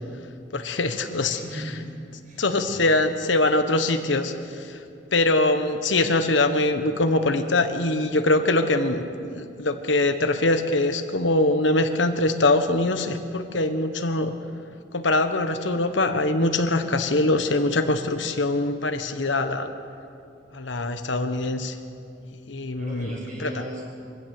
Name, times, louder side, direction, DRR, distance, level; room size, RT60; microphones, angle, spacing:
voice 1, 0.5-1.4 2.4-4.8 5.1-14.3 14.9-19.7 20.5-21.8 22.5-23.1 23.4-23.5, left 2 dB, 75° left, 8 dB, 1.4 m, -23 dB
voice 2, 1.2-1.8 2.2-2.8 22.8-23.8, right 1 dB, 45° right, -3 dB, 6.9 m, -37 dB
24.0 x 16.0 x 7.9 m, 2.4 s
head